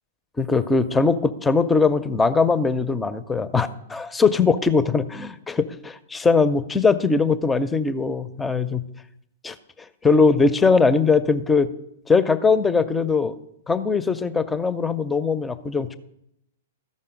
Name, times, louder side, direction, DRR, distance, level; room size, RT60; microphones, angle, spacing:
voice 1, 0.4-8.8 9.4-9.5 10.0-11.7 12.1-13.3 13.7-15.9, left 4 dB, 10° left, 14 dB, 0.5 m, -20 dB
13.5 x 5.5 x 5.1 m, 0.78 s
figure-of-eight pair, 105°, 0 cm